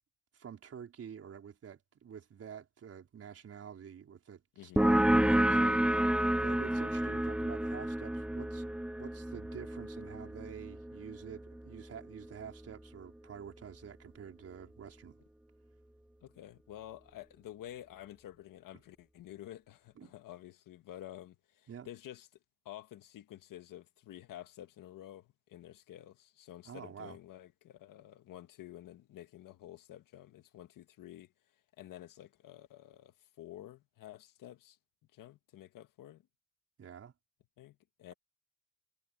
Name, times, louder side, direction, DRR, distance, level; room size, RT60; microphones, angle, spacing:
voice 1, 0.3-15.2 20.0-20.1 21.7-21.9 26.6-27.2 36.8-37.1, right 8 dB, 40° right, 4.7 m, -48 dB
sound 1, 4.8-12.0, right 1 dB, 5° right, 0.7 m, -30 dB
voice 2, 16.2-22.3 22.7-31.3 31.8-34.8 35.1-36.2 37.6-38.1, left 12 dB, 65° left, 1.7 m, -50 dB
cardioid pair, 130°, 35 cm